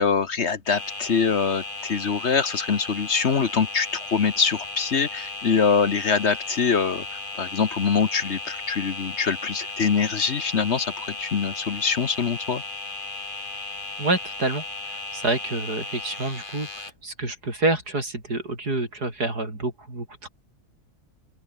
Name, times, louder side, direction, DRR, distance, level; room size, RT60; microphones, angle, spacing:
voice 1, 0.0-12.6, left 6 dB, 50° left, 1.3 m, -24 dB
sound 1, 0.7-16.9, left 2 dB, 30° left, 3.3 m, -35 dB
voice 2, 14.0-20.3, right 2 dB, 90° right, 7.0 m, -28 dB
open air
omnidirectional pair, 1.6 m